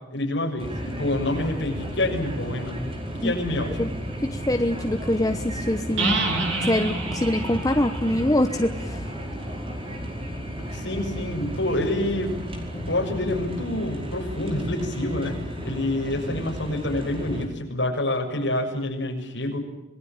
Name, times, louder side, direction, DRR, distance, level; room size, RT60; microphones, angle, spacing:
voice 1, 0.1-3.9 10.7-12.4 12.7-19.6, left 1 dB, 60° left, 1 dB, 6.7 m, -27 dB
sound 1, 0.6-17.5, equal, 25° right, 4.9 m, -33 dB
voice 2, 4.2-6.2 6.6-9.0, left 1 dB, 20° left, 6 dB, 1.0 m, -24 dB
sound 2, 6.0-9.6, right 3 dB, 65° right, 6.4 m, -29 dB
27.0 x 20.0 x 9.0 m, 0.95 s
head